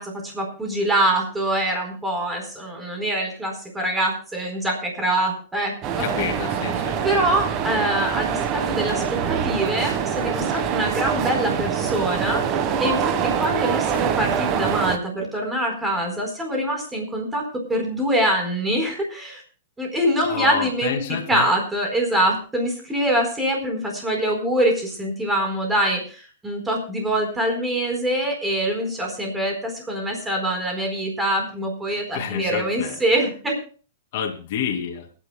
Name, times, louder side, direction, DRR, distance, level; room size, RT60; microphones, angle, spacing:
voice 1, 0.0-6.1 7.0-19.4 19.8-33.6, right 1 dB, 10° right, 2 dB, 4.3 m, -24 dB
sound 1, 5.8-15.0, right 8 dB, 30° right, 1.4 m, -24 dB
voice 2, 6.0-7.0 20.2-21.5 32.1-32.9 34.1-35.0, left 8 dB, 50° left, 0 dB, 2.6 m, -29 dB
29.0 x 10.0 x 2.3 m, 0.38 s
hypercardioid pair, 155°, 0 cm